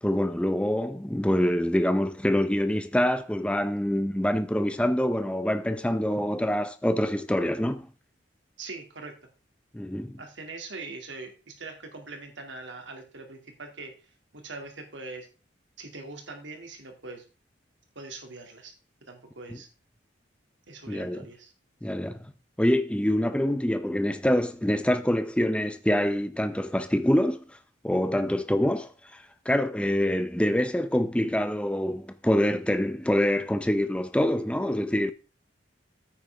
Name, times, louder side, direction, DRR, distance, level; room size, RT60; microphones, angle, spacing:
voice 1, 0.0-7.9 9.7-10.2 20.9-21.2 21.8-22.3 22.6-27.4 27.8-28.9 29.5-35.1, left 1 dB, 5° left, 0.6 m, -25 dB
voice 2, 8.6-9.1 10.2-15.3 15.8-17.2 18.0-18.7 19.1-19.7 20.7-21.5, right 3 dB, 75° right, 2.4 m, -42 dB
9.7 x 8.7 x 3.4 m
head